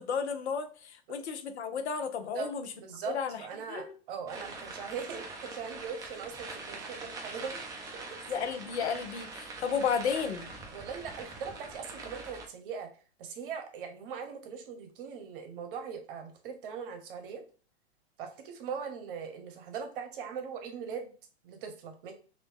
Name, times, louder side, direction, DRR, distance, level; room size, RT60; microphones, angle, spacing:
voice 1, 0.0-2.7 3.1-3.4 3.7-3.9 8.3-10.5, left 6 dB, 80° left, 8 dB, 0.7 m, -33 dB
voice 2, 2.7-7.6 7.9-8.0 10.7-12.9 13.2-17.4 18.2-21.1 21.4-22.1, right 6 dB, 50° right, 6 dB, 0.9 m, -40 dB
sound 1, 4.3-12.5, right 3 dB, 10° right, 0.4 m, -43 dB
3.0 x 2.7 x 3.4 m, 0.38 s
hypercardioid pair, 130°, 33 cm